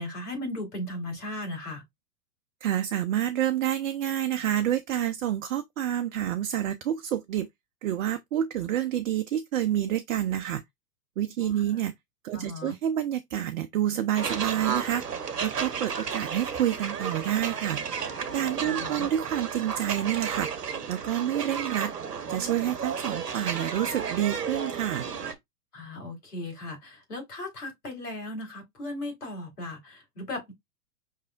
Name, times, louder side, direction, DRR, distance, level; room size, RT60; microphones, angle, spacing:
voice 1, 0.0-1.8 11.4-11.7 12.3-12.7 18.6-19.1 25.7-30.5, left 1 dB, 75° left, 3.1 m, -37 dB
voice 2, 2.6-7.5 7.8-10.6 11.2-11.9 12.2-15.0 15.4-17.8 18.3-20.5 20.9-21.9 22.3-25.1, right 11 dB, 55° right, 0.6 m, -28 dB
sound 1, 14.2-25.3, right 6 dB, 80° right, 1.0 m, -33 dB
5.4 x 3.2 x 2.3 m
figure-of-eight pair, 110°, 46 cm